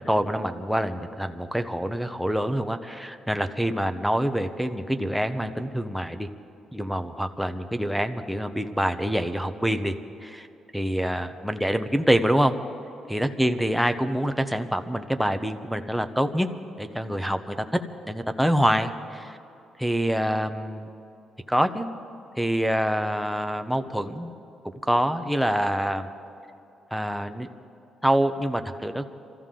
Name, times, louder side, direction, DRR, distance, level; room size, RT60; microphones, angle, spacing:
voice 1, 0.1-6.3 6.7-9.9 10.2-10.5 10.7-12.5 13.1-16.5 16.8-19.4 19.8-20.9 21.5-21.9 22.4-24.3 24.8-26.1 26.9-27.5 28.0-29.1, equal, ahead, 7 dB, 1.0 m, -26 dB
25.5 x 14.5 x 3.8 m, 2.8 s
cardioid pair, 90°, 0 cm